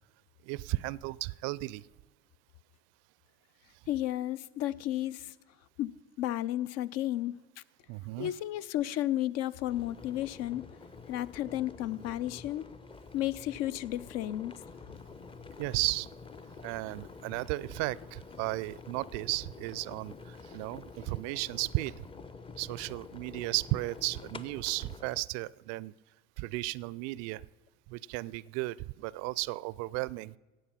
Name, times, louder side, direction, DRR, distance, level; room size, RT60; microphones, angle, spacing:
voice 1, 0.4-1.9 7.9-8.3 15.6-16.1 16.6-22.0 22.6-25.9 26.4-27.4 27.9-30.3, right 21 dB, 60° right, 22 dB, 0.4 m, -34 dB
voice 2, 3.9-5.3 5.8-7.3 8.2-10.6 11.1-12.6 13.1-14.5, left 13 dB, 55° left, 18 dB, 0.6 m, -33 dB
sound 1, 9.7-25.2, left 4 dB, 15° left, 0.7 m, -48 dB
17.0 x 8.1 x 5.7 m, 1.2 s
hypercardioid pair, 65°, 30 cm